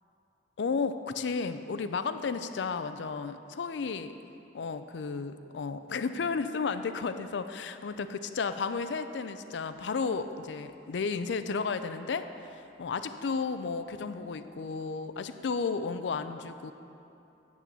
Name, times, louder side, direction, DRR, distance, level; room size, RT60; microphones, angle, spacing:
voice 1, 0.6-4.1 4.5-12.3 12.8-16.7, left 5 dB, 75° left, 10 dB, 0.4 m, -33 dB
8.9 x 6.1 x 6.8 m, 2.8 s
head